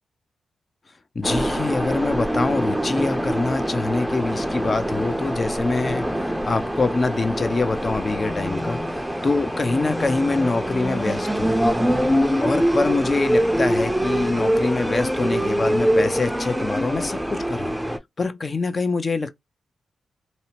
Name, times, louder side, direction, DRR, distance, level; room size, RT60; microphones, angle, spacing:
voice 1, 1.1-11.6 12.4-17.8 18.2-19.3, left 3 dB, 45° left, 0.5 m, -25 dB
sound 1, 1.2-18.0, equal, 5° right, 0.5 m, -24 dB
2.7 x 2.1 x 2.7 m
supercardioid pair, 50°, 0 cm